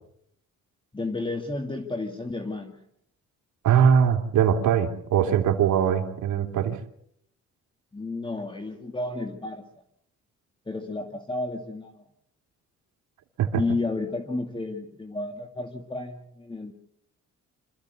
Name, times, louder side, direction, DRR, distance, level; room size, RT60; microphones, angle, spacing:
voice 1, 0.9-2.8 5.2-5.3 7.9-9.6 10.7-12.0 13.6-16.7, left 2 dB, 15° left, 4 dB, 2.4 m, -32 dB
voice 2, 3.6-6.8 13.4-13.6, right 8 dB, 75° right, 3 dB, 2.7 m, -21 dB
26.0 x 14.5 x 8.1 m, 0.74 s
cardioid pair, 90°, 30 cm